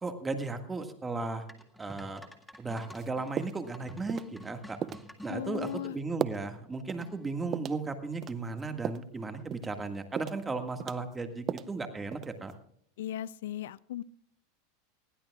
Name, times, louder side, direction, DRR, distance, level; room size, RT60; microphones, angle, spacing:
voice 1, 0.0-1.4 1.8-2.3 2.6-4.8 5.2-12.5, right 3 dB, 15° right, 7 dB, 1.8 m, -36 dB
sound 1, 1.5-5.8 7.0-7.4, left 1 dB, 5° left, 1.8 m, -50 dB
sound 2, 2.9-3.1 3.4-3.7 4.1-4.3 4.8-5.1 5.5-5.7 6.2-6.5 6.9-7.0 7.5-7.8 8.2-9.1 9.5-9.8 10.2-10.5 10.8-11.8 12.1-12.5, right 9 dB, 30° right, 0.6 m, -36 dB
voice 2, 5.3-5.9 13.0-14.0, left 11 dB, 80° left, 20 dB, 0.5 m, -37 dB
20.5 x 15.5 x 2.4 m, 0.65 s
supercardioid pair, 130°, 0 cm